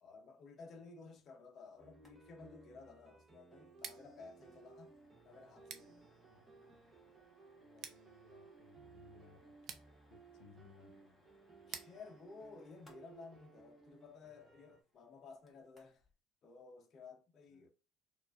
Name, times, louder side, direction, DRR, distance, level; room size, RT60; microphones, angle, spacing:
voice 1, 0.0-4.9 5.2-6.0 11.7-16.0 16.4-17.7, left 4 dB, 35° left, 0.7 m, -55 dB
voice 2, 0.7-1.4 6.3-6.5 7.6-9.6 10.1-11.2 17.5-17.7, left 7 dB, 80° left, 0.8 m, -64 dB
sound 1, 1.8-14.8, right 4 dB, 20° right, 0.8 m, -61 dB
sound 2, 1.9-2.2 2.4-2.5 2.9-3.1 3.4-16.1, equal, 5° left, 1.2 m, -71 dB
Scissors, 3.7-13.5, right 8 dB, 50° right, 0.5 m, -56 dB
4.6 x 2.4 x 2.5 m
cardioid pair, 145°, 0 cm